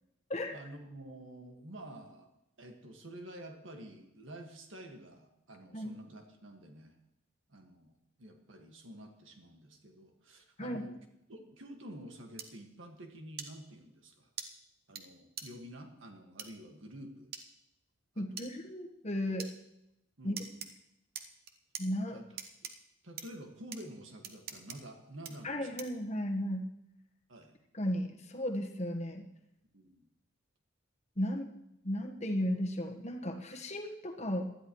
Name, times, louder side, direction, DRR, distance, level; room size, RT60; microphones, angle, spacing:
voice 1, 0.5-2.3 2.6-7.0 7.5-11.0 11.3-14.3 14.9-17.3 18.2-18.4 20.2-20.6 22.1-22.2 22.6-22.7 23.0-25.8 27.3-27.5 29.7-30.1, right 1 dB, 70° right, 3 dB, 1.8 m, -49 dB
sound 1, 12.4-12.5 13.4-13.5 14.4-14.5 15.0-15.1 15.4-15.5 16.4-16.5 17.3-17.4 18.4-18.5 19.4-19.5 20.4-20.7 21.1-21.8 22.4-22.7 23.2-23.3 23.7-23.8 24.2-24.8 25.2-25.3 25.8-26.0, right 7 dB, 50° right, 1.0 m, -42 dB
voice 2, 18.2-19.5 20.2-20.4 21.8-22.2 25.4-26.7 27.7-29.3 31.2-31.5 31.8-34.5, equal, 35° left, 3 dB, 1.3 m, -35 dB
19.5 x 12.5 x 3.1 m, 0.85 s
head